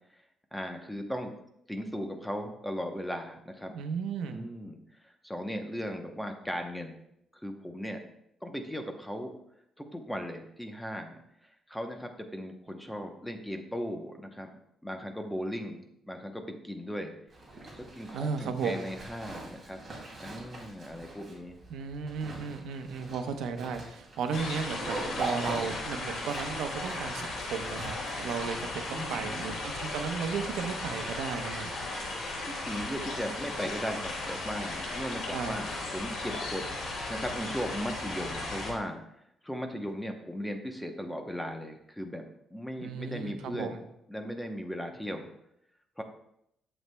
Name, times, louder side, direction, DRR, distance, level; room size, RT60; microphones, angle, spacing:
voice 1, 0.5-1.3 1.7-3.7 4.3-4.8 5.2-7.0 7.4-8.0 8.4-9.3 9.8-14.5 14.8-17.1 17.8-19.8 20.2-21.6 28.9-29.6 32.5-39.0 39.4-42.2 42.5-43.8 44.1-45.3 46.0-46.1, equal, 5° left, 4 dB, 0.8 m, -37 dB
voice 2, 3.7-4.4 18.1-18.9 21.7-31.7 35.3-35.5 42.8-43.8, right 6 dB, 90° right, 6 dB, 0.8 m, -35 dB
Zipper (clothing), 17.3-29.8, right 2 dB, 25° right, 2.4 m, -42 dB
sound 1, 24.3-38.7, left 2 dB, 60° left, 3.3 m, -36 dB
11.0 x 7.2 x 2.2 m, 0.77 s
cardioid pair, 150°, 0 cm